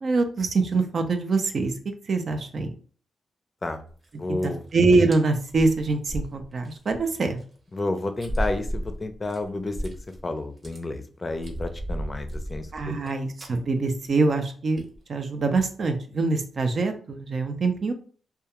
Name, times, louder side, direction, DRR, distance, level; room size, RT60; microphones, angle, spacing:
voice 1, 0.0-1.7 2.1-2.7 4.3-7.4 12.7-17.9, right 3 dB, 60° right, 6 dB, 0.5 m, -24 dB
sound 1, 3.9-4.1 4.4-4.7 5.1-5.2 5.5-7.0 7.4-7.5 8.2-10.2 10.5-10.8 11.3-13.1 13.4-13.6 13.9-14.1 14.3-14.4 14.8-15.0 15.4-15.7, equal, 45° right, 0.9 m, -33 dB
voice 2, 4.2-4.6 7.7-9.9 10.2-12.9, left 2 dB, 30° left, 7 dB, 0.4 m, -31 dB
2.3 x 2.2 x 2.9 m, 0.43 s
cardioid pair, 65°, 0 cm